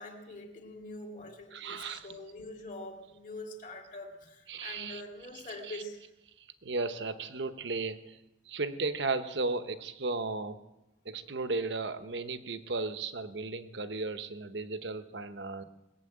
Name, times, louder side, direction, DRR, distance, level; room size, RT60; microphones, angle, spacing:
voice 1, 0.0-6.0, left 2 dB, 45° left, 1 dB, 2.6 m, -44 dB
voice 2, 1.5-2.2 4.5-5.0 5.3-5.8 6.6-8.2 8.5-10.6 11.0-15.6, right 3 dB, 75° right, 11 dB, 1.0 m, -35 dB
20.5 x 7.6 x 8.7 m, 0.98 s
head